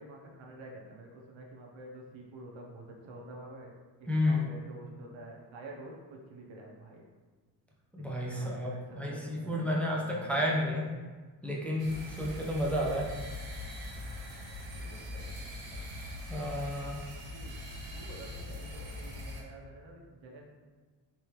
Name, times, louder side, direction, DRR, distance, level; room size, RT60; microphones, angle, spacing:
voice 1, 0.0-3.7 4.0-7.0 8.3-9.6 9.9-10.7 14.8-15.8 17.1-17.6 18.0-20.4, right 2 dB, 70° right, -1 dB, 0.9 m, -48 dB
voice 2, 4.1-4.5 7.9-11.0 11.4-13.1 16.3-17.1, left 1 dB, 5° left, -3 dB, 0.6 m, -31 dB
sound 1, 11.8-19.4, left 1 dB, 50° right, 1.0 m, -42 dB
3.6 x 2.8 x 3.1 m, 1.4 s
supercardioid pair, 60°, 47 cm